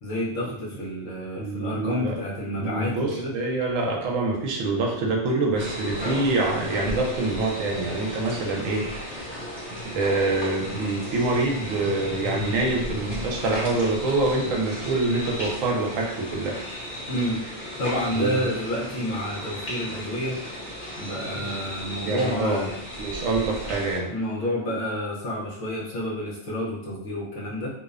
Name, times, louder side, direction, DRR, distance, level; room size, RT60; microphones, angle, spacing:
voice 1, 0.0-3.3 17.1-17.4 17.8-20.4 21.0-22.7 24.1-27.7, equal, 70° left, -4 dB, 1.0 m, -29 dB
voice 2, 1.4-2.2 2.6-9.3 9.8-16.6 18.1-18.5 21.3-21.5 22.0-22.7 23.0-24.1, right 2 dB, 80° right, 0 dB, 1.0 m, -26 dB
sound 1, 5.6-24.0, left 1 dB, 45° left, 0.9 m, -35 dB
2.6 x 2.0 x 2.3 m, 0.76 s
omnidirectional pair, 1.4 m